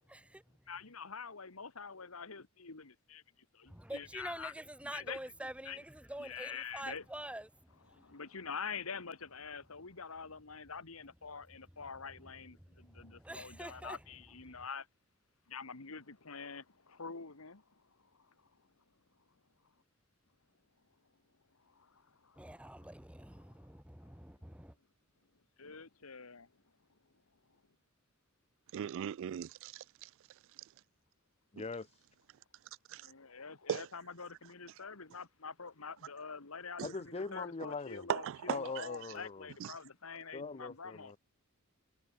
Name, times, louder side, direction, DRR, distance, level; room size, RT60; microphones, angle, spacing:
voice 1, 0.0-0.6 3.7-8.0 12.6-14.0 14.4-14.6 22.4-24.7, right 1 dB, 5° right, 1.9 m, -47 dB
voice 2, 0.7-3.2 3.5-4.5 4.8-5.8 6.2-7.0 7.9-14.9 15.5-17.6 21.8-21.9 22.2-22.7 25.6-26.5 32.9-41.1, left 5 dB, 85° left, 1.8 m, -46 dB
voice 3, 28.7-30.1 32.9-33.0 33.7-33.9 36.8-36.9 38.1-38.9 39.6-39.7, right 9 dB, 65° right, 0.3 m, -38 dB
voice 4, 31.5-32.0 36.8-38.1 38.5-39.5 40.3-41.2, left 4 dB, 30° left, 0.6 m, -41 dB
head